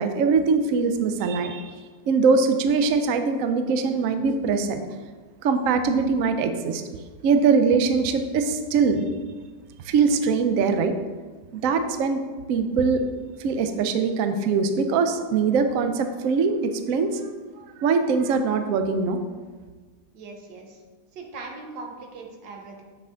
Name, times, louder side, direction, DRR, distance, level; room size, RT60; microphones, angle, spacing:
voice 1, 0.0-1.7 2.1-4.8 5.4-6.8 7.2-9.0 9.8-10.9 11.5-12.2 12.5-13.0 13.4-17.2 17.8-19.2, right 5 dB, 70° right, 8 dB, 0.8 m, -22 dB
voice 2, 20.1-20.8 21.1-22.8, right 3 dB, 85° right, 2 dB, 1.7 m, -40 dB
7.6 x 5.6 x 3.7 m, 1.4 s
omnidirectional pair, 1.9 m